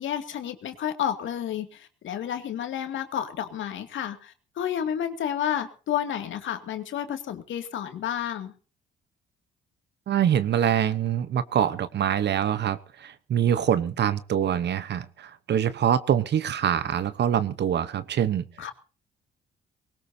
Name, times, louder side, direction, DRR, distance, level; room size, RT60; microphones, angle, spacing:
voice 1, 0.0-8.5 18.6-18.7, left 9 dB, 75° left, 6 dB, 2.5 m, -31 dB
voice 2, 10.1-18.7, right 9 dB, 60° right, 14 dB, 1.1 m, -25 dB
20.5 x 18.5 x 2.8 m, 0.37 s
cardioid pair, 90°, 20 cm